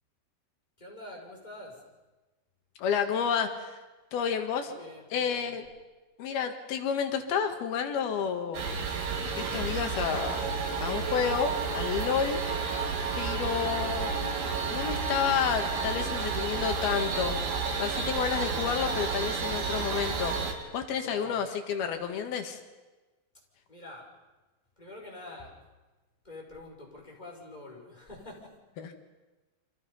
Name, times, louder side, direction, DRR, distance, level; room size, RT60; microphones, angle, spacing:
voice 1, 0.8-1.9 4.6-5.6 13.3-14.0 20.9-21.5 23.7-24.2 24.8-25.6 26.2-28.6, left 2 dB, 10° left, -1 dB, 5.4 m, -46 dB
voice 2, 2.8-3.8 4.1-4.7 5.1-5.7 6.2-8.6 9.4-10.4 10.8-12.4 13.2-14.2 14.7-17.4 17.8-20.4 20.7-22.6 28.8-28.9, left 7 dB, 80° left, 6 dB, 3.7 m, -30 dB
sound 1, 8.5-20.5, right 5 dB, 80° right, 4.6 m, -31 dB
29.5 x 25.5 x 5.6 m, 1.2 s
omnidirectional pair, 4.3 m